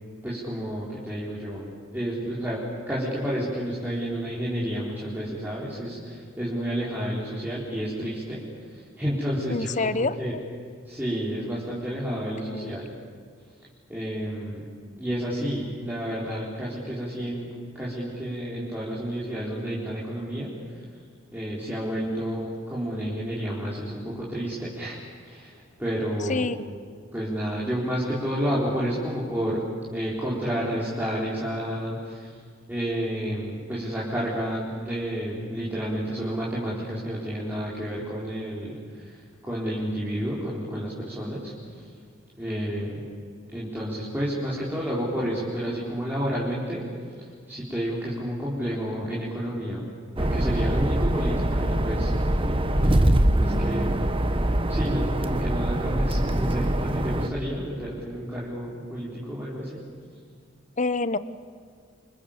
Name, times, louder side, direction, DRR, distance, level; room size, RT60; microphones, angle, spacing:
voice 1, 0.2-2.6 2.9-10.4 10.8-12.9 13.9-14.6 15.0-20.8 21.3-26.5 27.1-29.6 29.9-32.4 32.7-41.9 42.4-43.0 43.5-46.9 47.2-49.9 50.2-52.6 52.8-53.1 53.4-53.9 54.7-59.8, equal, 10° right, -7 dB, 4.5 m, -30 dB
voice 2, 9.5-10.4 12.1-12.8 26.3-26.6 60.8-61.2, left 3 dB, 40° left, 15 dB, 0.9 m, -27 dB
sound 1, 50.2-57.3, right 1 dB, 25° right, 1.3 m, -23 dB
28.5 x 26.0 x 7.4 m, 2.1 s
head